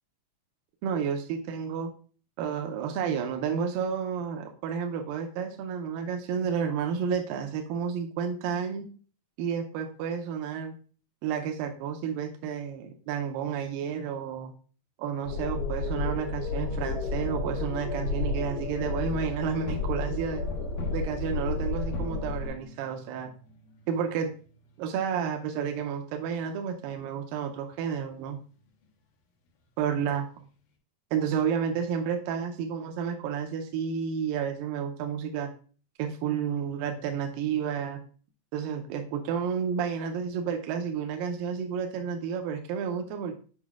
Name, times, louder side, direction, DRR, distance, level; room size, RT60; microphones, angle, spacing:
voice 1, 0.8-1.9 2.4-8.9 9.4-10.7 11.2-14.5 15.0-20.4 20.9-23.3 23.9-24.3 24.8-28.4 29.8-30.3 31.1-35.5 36.0-38.0 38.5-43.4, right 7 dB, 80° right, 4 dB, 2.4 m, -31 dB
sound 1, 15.2-22.5, left 3 dB, 90° left, 2.9 m, -31 dB
sound 2, 19.0-26.6 26.9-27.1 27.6-27.7 27.9-28.0 28.2-28.3 28.5-28.9 29.5-29.6 30.1-30.2, equal, 70° left, 2.6 m, -45 dB
8.2 x 5.6 x 2.4 m, 0.40 s
omnidirectional pair, 4.1 m